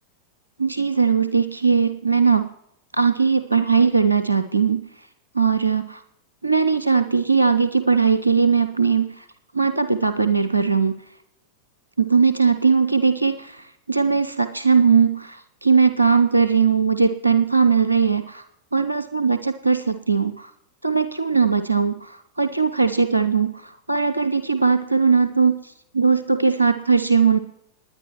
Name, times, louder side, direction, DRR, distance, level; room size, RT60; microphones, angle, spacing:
voice 1, 0.6-2.5 2.9-4.8 5.3-6.0 6.4-9.2 9.5-11.0 12.0-18.4 18.7-20.5 20.8-27.4, right 5 dB, 85° right, 11 dB, 0.6 m, -19 dB
20.5 x 9.9 x 3.0 m, 0.77 s
figure-of-eight pair, 90°, 0 cm